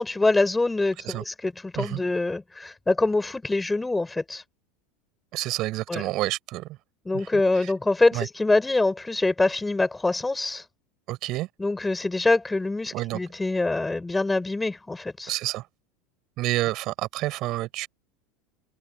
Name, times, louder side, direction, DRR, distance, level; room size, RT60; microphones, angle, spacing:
voice 1, 0.0-4.4 5.9-6.0 7.1-10.6 11.6-15.3, left 2 dB, 10° left, 7.4 m, -24 dB
voice 2, 5.3-6.7 7.1-7.7 8.1-8.3 11.1-11.5 12.9-13.2 15.3-15.6 16.4-17.9, right 17 dB, 55° right, 6.9 m, -29 dB
hypercardioid pair, 85°, 0 cm